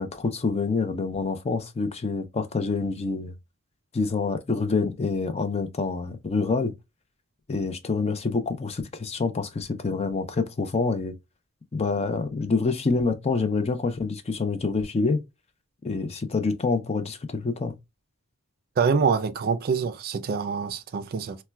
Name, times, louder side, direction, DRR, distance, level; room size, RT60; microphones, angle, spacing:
voice 1, 0.0-3.3 3.9-6.7 7.5-11.1 11.7-15.2 15.8-17.8, left 4 dB, 30° left, 0.4 m, -27 dB
voice 2, 18.8-21.4, right 5 dB, 45° right, 0.4 m, -25 dB
4.2 x 2.2 x 2.2 m
head